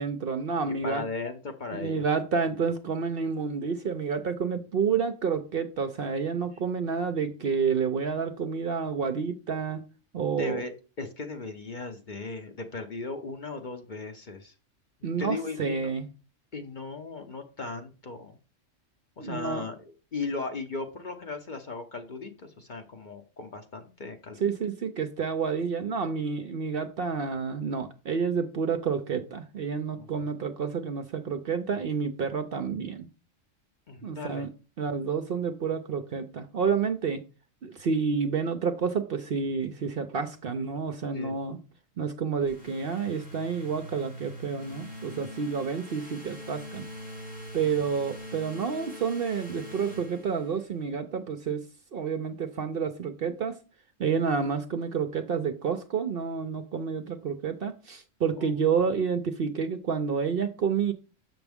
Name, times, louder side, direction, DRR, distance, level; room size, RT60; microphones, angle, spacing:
voice 1, 0.0-1.0 1.7-9.8 10.1-10.6 15.0-16.1 19.2-19.7 24.4-33.1 34.0-34.5 34.8-37.2 37.6-41.6 42.0-46.8 47.5-51.6 51.9-53.6 54.0-60.9, right 6 dB, 55° right, 8 dB, 0.7 m, -29 dB
voice 2, 0.7-2.0 10.3-14.5 15.0-15.9 16.5-18.4 19.2-24.4 30.0-30.1 33.9-34.5 41.1-41.3 47.5-47.7 58.4-58.5, left 3 dB, 45° left, 6 dB, 0.8 m, -37 dB
sound 1, 42.5-50.8, equal, 80° left, 4.2 m, -43 dB
7.0 x 6.1 x 3.5 m, 0.32 s
omnidirectional pair, 1.3 m